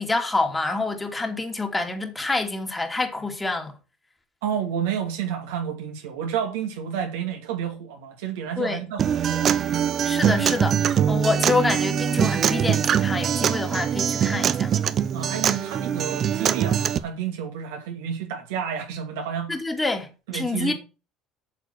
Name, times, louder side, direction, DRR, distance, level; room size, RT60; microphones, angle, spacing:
voice 1, 0.0-3.8 8.6-8.8 10.0-14.7 19.5-20.7, left 3 dB, 15° left, 2.8 m, -27 dB
voice 2, 4.4-9.5 15.1-19.6 20.3-20.7, right 8 dB, 70° right, 2.4 m, -30 dB
Acoustic guitar, 9.0-17.0, right 9 dB, 45° right, 0.8 m, -23 dB
8.8 x 6.7 x 6.1 m
hypercardioid pair, 65°, 0 cm